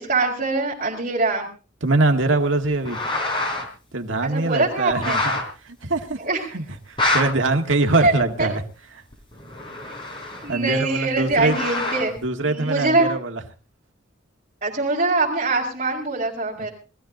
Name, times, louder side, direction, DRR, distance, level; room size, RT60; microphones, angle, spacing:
voice 1, 0.0-1.5 4.2-5.2 6.2-6.4 8.0-8.1 8.4-8.5 10.4-12.1 12.5-13.1 14.6-16.7, right 3 dB, 35° right, -6 dB, 4.6 m, -23 dB
voice 2, 1.8-3.0 3.9-5.4 5.6-6.2 6.5-8.6 10.5-11.6 12.2-13.4 16.6-16.7, right 2 dB, 80° right, 5 dB, 1.9 m, -23 dB
sound 1, 2.6-3.7 4.1-4.2 4.9-5.4 6.0-6.1 6.7-7.2 8.2-8.3 9.1-10.6 11.3-12.2, left 2 dB, 25° left, 4.0 m, -26 dB
20.5 x 14.5 x 3.8 m, 0.34 s
head